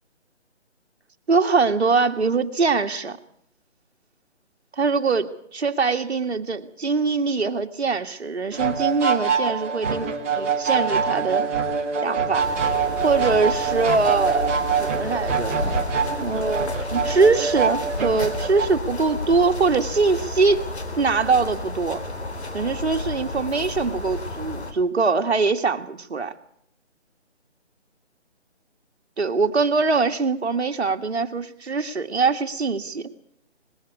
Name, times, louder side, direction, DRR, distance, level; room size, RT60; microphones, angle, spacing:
voice 1, 1.3-3.2 4.8-11.4 12.0-12.5 13.0-15.9 16.2-20.7 20.9-22.0 22.5-26.3 29.2-33.1, right 4 dB, 65° right, 5 dB, 2.0 m, -23 dB
sound 1, 8.5-18.7, right 6 dB, 10° right, 1.4 m, -25 dB
sound 2, 12.4-24.7, left 2 dB, 65° left, 3.6 m, -32 dB
20.5 x 15.5 x 8.2 m, 0.70 s
hypercardioid pair, 170°, 35 cm